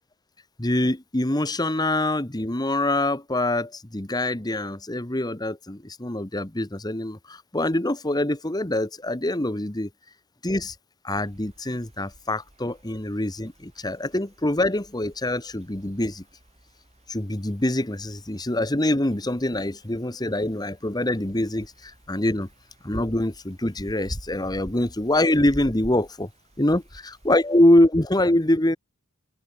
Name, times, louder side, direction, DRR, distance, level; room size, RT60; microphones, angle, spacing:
voice 1, 0.6-9.9 10.4-10.7 11.0-16.2 17.1-22.5 22.8-26.3 26.6-28.8, left 1 dB, 20° left, 1.3 m, -24 dB
sound 1, 11.1-27.7, right 1 dB, 30° right, 2.2 m, -47 dB
open air
head